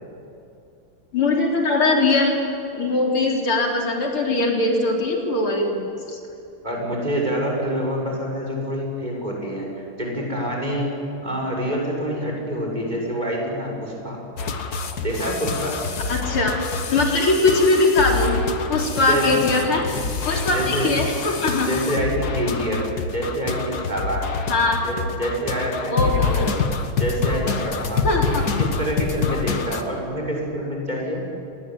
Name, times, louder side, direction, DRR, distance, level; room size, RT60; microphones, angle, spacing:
voice 1, 1.1-2.3 2.7-6.2 16.1-16.5 16.9-18.4 18.7-19.8 20.3-21.7 24.5-24.8 25.9-26.5 28.0-28.4, left 2 dB, 85° left, 1 dB, 4.7 m, -21 dB
voice 2, 6.6-14.2 15.0-15.8 19.1-19.3 19.9-20.0 20.5-20.9 21.7-22.9 23.1-24.3 24.8-26.6 27.0-31.2, equal, 20° right, -1 dB, 7.0 m, -26 dB
sound 1, 14.4-29.8, left 5 dB, 50° left, 1.9 m, -26 dB
29.0 x 20.5 x 9.4 m, 2.8 s
omnidirectional pair, 2.3 m